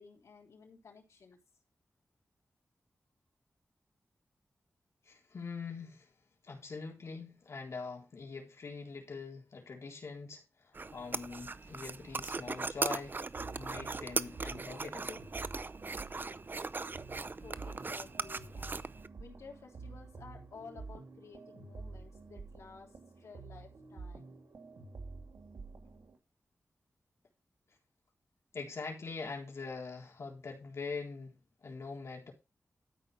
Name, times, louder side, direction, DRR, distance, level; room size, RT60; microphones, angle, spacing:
voice 1, 0.0-1.4 17.4-18.9 19.2-24.4, left 5 dB, 90° left, 3.4 m, -54 dB
voice 2, 5.1-6.1 6.4-15.2 28.5-31.4 31.6-32.3, left 4 dB, 70° left, 3.8 m, -43 dB
sound 1, 10.7-19.1, right 3 dB, 40° right, 0.6 m, -39 dB
sound 2, 13.4-26.2, right 3 dB, 90° right, 2.5 m, -49 dB
13.0 x 5.6 x 5.1 m
cardioid pair, 65°, 5 cm